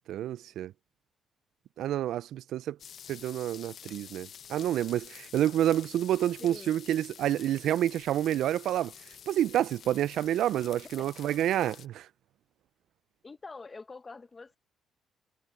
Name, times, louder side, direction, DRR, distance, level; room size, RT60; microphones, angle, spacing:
voice 1, 0.1-0.7 1.8-2.8 3.1-8.9 9.3-12.1, right 12 dB, 80° right, 0.3 m, -28 dB
sound 1, 2.8-11.9, left 8 dB, 60° left, 0.6 m, -49 dB
voice 2, 6.4-6.8 11.0-11.1 13.2-14.6, left 3 dB, 30° left, 1.2 m, -45 dB
cardioid pair, 90°, 0 cm